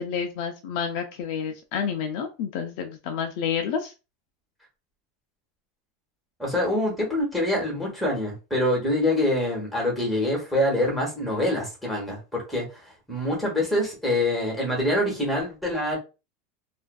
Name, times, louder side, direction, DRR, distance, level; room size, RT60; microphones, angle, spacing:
voice 1, 0.0-3.9, left 7 dB, 50° left, 5 dB, 0.4 m, -29 dB
voice 2, 6.4-16.0, left 1 dB, ahead, -3 dB, 1.0 m, -25 dB
2.4 x 2.4 x 2.2 m, 0.29 s
supercardioid pair, 170°, 0 cm